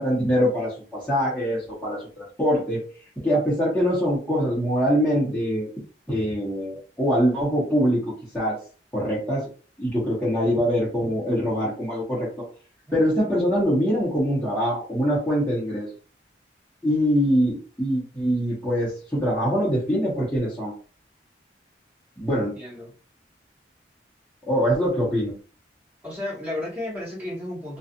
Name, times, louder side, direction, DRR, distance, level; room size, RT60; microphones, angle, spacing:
voice 1, 0.0-2.8 3.2-5.7 6.1-8.0 8.3-8.6 8.9-9.5 9.8-12.3 12.9-15.9 16.8-20.7 22.2-22.5 24.5-25.3, equal, 10° left, -10 dB, 1.0 m, -23 dB
voice 2, 22.3-22.9 26.0-27.8, left 1 dB, 10° right, -7 dB, 1.2 m, -33 dB
2.6 x 2.4 x 2.5 m, 0.39 s
head